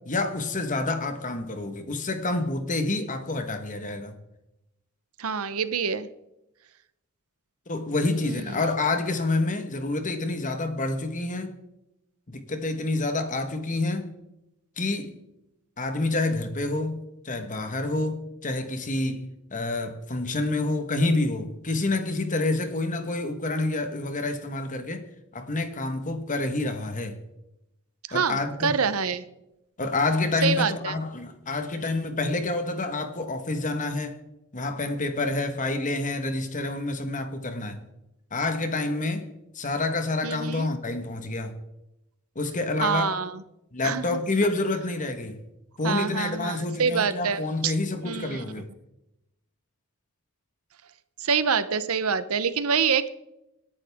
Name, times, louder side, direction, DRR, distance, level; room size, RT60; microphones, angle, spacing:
voice 1, 0.0-4.1 7.7-11.5 12.3-14.1 14.8-15.1 15.8-19.2 19.5-25.0 25.3-27.2 28.1-28.7 29.8-34.2 34.5-37.8 38.3-39.3 39.5-41.5 42.3-43.1 43.7-45.4 45.8-48.6, left 2 dB, 35° left, 1.4 m, -28 dB
voice 2, 5.2-6.1 8.1-8.6 28.1-29.2 30.4-30.9 40.2-40.7 42.8-43.4 43.8-44.2 45.8-47.7 48.0-48.4 51.2-53.1, right 6 dB, 75° right, 0.8 m, -26 dB
27.0 x 10.5 x 3.6 m
head